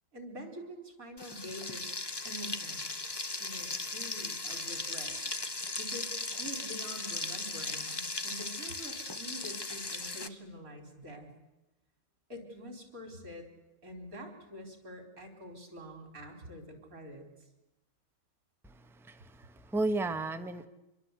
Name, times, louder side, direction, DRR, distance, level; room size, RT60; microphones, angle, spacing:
voice 1, 0.1-1.9 2.2-2.8 3.4-5.1 5.8-11.3 12.3-13.5 13.8-17.5, equal, 40° right, 5 dB, 4.7 m, -46 dB
Frying (food), 1.2-10.3, left 2 dB, 35° left, 0.3 m, -37 dB
voice 2, 18.6-20.7, right 2 dB, ahead, 8 dB, 0.7 m, -34 dB
27.0 x 22.0 x 8.2 m, 1.0 s
omnidirectional pair, 2.4 m